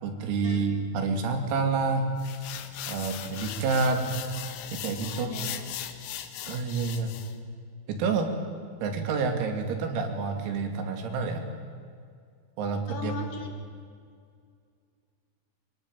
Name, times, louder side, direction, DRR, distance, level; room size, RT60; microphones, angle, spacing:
voice 1, 0.0-2.1 2.9-4.2 4.7-5.4 6.5-7.2 7.9-8.3 8.8-11.5 12.6-13.1, right 4 dB, 85° right, 5 dB, 5.4 m, -28 dB
sound 1, 2.2-7.3, left 11 dB, 90° left, 4.2 m, -39 dB
voice 2, 5.1-5.6 12.9-13.5, left 5 dB, 55° left, 4 dB, 4.2 m, -38 dB
24.0 x 22.0 x 9.1 m, 2.2 s
omnidirectional pair, 6.0 m